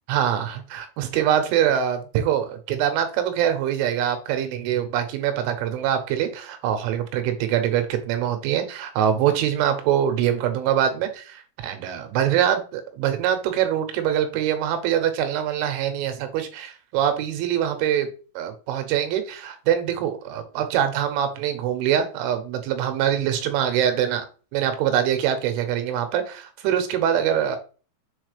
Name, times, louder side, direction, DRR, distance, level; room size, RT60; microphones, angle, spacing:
voice 1, 0.1-18.1 18.4-24.3 24.5-27.6, right 10 dB, 85° right, 7 dB, 3.3 m, -24 dB
7.3 x 4.0 x 3.3 m, 0.37 s
omnidirectional pair, 5.6 m